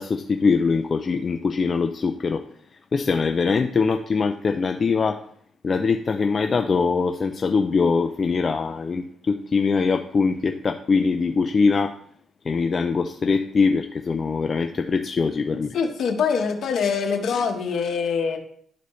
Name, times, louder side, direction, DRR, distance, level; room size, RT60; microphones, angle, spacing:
voice 1, 0.0-2.4 2.9-5.2 5.6-11.9 12.5-15.7, left 4 dB, 40° left, 5 dB, 0.4 m, -22 dB
voice 2, 15.7-18.4, left 6 dB, 65° left, 4 dB, 1.2 m, -24 dB
11.5 x 4.1 x 3.2 m, 0.64 s
cardioid pair, 90°, 0 cm